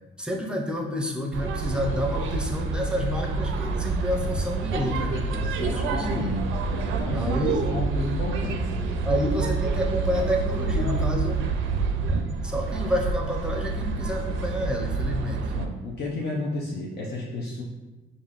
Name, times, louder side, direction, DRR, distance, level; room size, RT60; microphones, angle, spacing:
voice 1, 0.2-5.3 5.6-6.3 7.1-7.6 9.0-11.4 12.4-15.4, equal, 5° right, 0 dB, 0.6 m, -29 dB
sound 1, 1.3-15.7, right 4 dB, 80° right, 0.4 m, -28 dB
voice 2, 5.3-7.4 7.7-8.7 9.1-9.2 15.5-17.6, left 2 dB, 55° left, -4 dB, 0.7 m, -32 dB
4.9 x 2.6 x 2.5 m, 1.1 s
cardioid pair, 90°, 20 cm